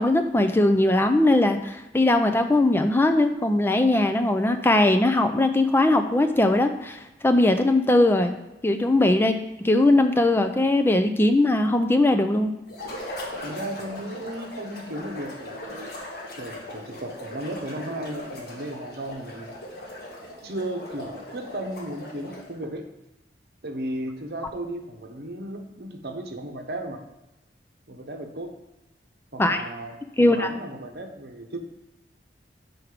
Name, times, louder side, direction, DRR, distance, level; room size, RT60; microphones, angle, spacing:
voice 1, 0.0-8.3 8.6-9.4 9.6-12.5 29.4-29.6 30.2-30.5, left 2 dB, 15° left, 7 dB, 0.4 m, -20 dB
sound 1, 12.7-22.6, left 1 dB, 60° left, 1.6 m, -39 dB
voice 2, 13.4-15.9 16.3-19.5 20.4-22.8 23.6-27.0 27.9-28.5 29.3-31.6, right 1 dB, 65° right, 4 dB, 1.0 m, -35 dB
6.4 x 4.6 x 4.9 m, 0.97 s
head